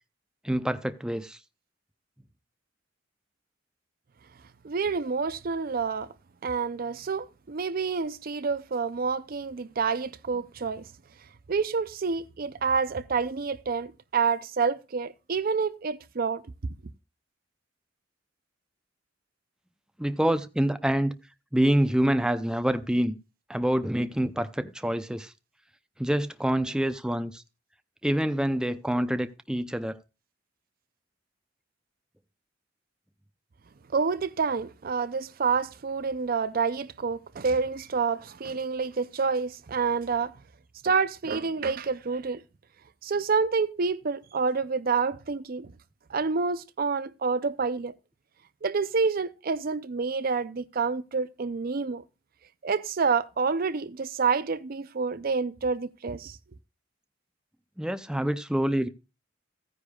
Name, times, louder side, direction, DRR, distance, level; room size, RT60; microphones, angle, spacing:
voice 1, 0.4-1.4 20.0-21.1 21.5-23.1 23.5-25.3 26.0-27.4 28.0-30.0 57.8-58.9, right 1 dB, 5° right, 0.5 m, -26 dB
voice 2, 4.6-6.1 6.4-10.9 11.5-16.4 33.9-40.3 40.8-42.4 43.0-45.7 46.1-47.9 48.6-52.0 52.6-56.4, right 5 dB, 50° right, 0.5 m, -28 dB
15.5 x 9.7 x 2.3 m
head